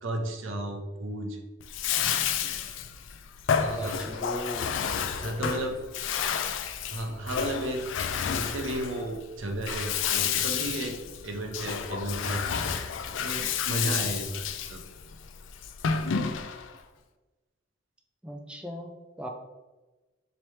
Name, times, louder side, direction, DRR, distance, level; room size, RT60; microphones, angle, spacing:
voice 1, 0.0-1.4 3.6-4.0 5.2-5.8 6.9-7.9 8.3-11.0 11.2-12.5 13.2-14.8, right 1 dB, 80° right, 3 dB, 0.6 m, -33 dB
Bathtub (filling or washing), 1.6-16.8, left 7 dB, 75° left, 0.3 m, -30 dB
voice 2, 3.8-4.9 18.2-19.3, equal, 5° right, 1 dB, 0.3 m, -38 dB
3.2 x 2.9 x 4.2 m, 1.2 s
head